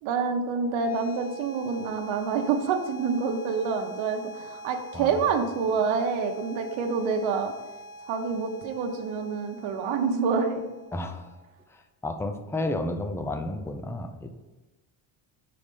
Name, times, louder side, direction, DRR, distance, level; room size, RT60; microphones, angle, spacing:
voice 1, 0.0-7.5 8.1-10.7, right 5 dB, 75° right, 5 dB, 0.9 m, -27 dB
sound 1, 0.6-11.6, right 1 dB, 35° left, 1.9 m, -45 dB
voice 2, 10.9-11.3 11.7-14.3, left 2 dB, 5° left, 6 dB, 0.3 m, -32 dB
4.9 x 4.3 x 5.3 m, 1.1 s
cardioid pair, 110°, 47 cm